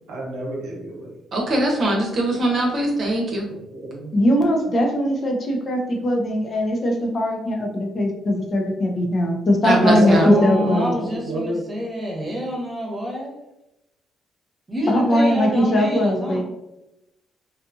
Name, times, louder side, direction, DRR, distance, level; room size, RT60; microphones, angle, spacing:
voice 1, 0.1-1.1 3.4-4.1 9.8-11.6, right 2 dB, 85° right, -2 dB, 0.9 m, -28 dB
voice 2, 1.3-3.5 9.6-10.3, right 1 dB, 55° right, -1 dB, 0.8 m, -21 dB
voice 3, 4.1-10.9 14.9-16.4, left 1 dB, 45° left, 1 dB, 0.6 m, -20 dB
voice 4, 10.0-13.4 14.7-16.4, equal, 20° right, -1 dB, 1.0 m, -27 dB
2.6 x 2.4 x 2.5 m, 0.90 s
cardioid pair, 90°, 0 cm